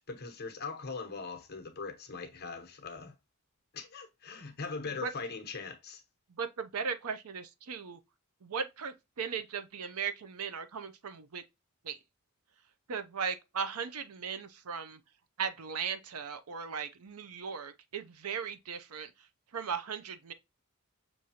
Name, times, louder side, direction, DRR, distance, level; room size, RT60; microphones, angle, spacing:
voice 1, 0.0-3.1 3.7-6.0, left 4 dB, 45° left, 0.9 m, -41 dB
voice 2, 6.4-8.0 8.4-11.4 11.8-12.0 12.9-15.0 15.4-19.1 19.5-20.3, right 6 dB, 80° right, 0.6 m, -37 dB
6.2 x 2.7 x 2.8 m
head